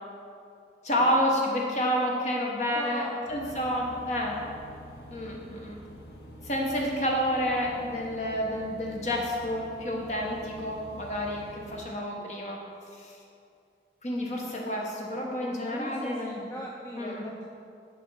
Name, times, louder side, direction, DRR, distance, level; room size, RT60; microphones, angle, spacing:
voice 1, 0.8-3.0 3.3-4.4 5.1-5.8 6.4-12.6 12.9-13.2 14.0-16.4 17.0-17.2, equal, 40° left, -1 dB, 1.0 m, -29 dB
voice 2, 2.7-3.3 3.7-4.1 5.5-5.6 6.0-6.1 11.7-11.8 12.2-12.3 15.6-17.5, equal, 15° left, -2 dB, 0.4 m, -41 dB
sound 1, 3.2-11.9, equal, 70° left, 0.8 m, -47 dB
7.4 x 3.5 x 6.1 m, 2.5 s
head